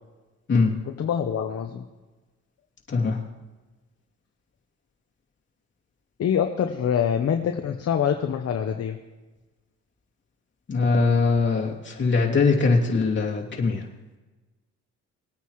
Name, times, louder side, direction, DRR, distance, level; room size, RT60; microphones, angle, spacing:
voice 1, 0.9-1.8 6.2-9.0, left 8 dB, 55° left, 4 dB, 1.0 m, -25 dB
voice 2, 10.7-13.8, left 4 dB, 40° left, -2 dB, 2.7 m, -21 dB
21.0 x 9.1 x 3.2 m, 1.2 s
cardioid pair, 90°, 30 cm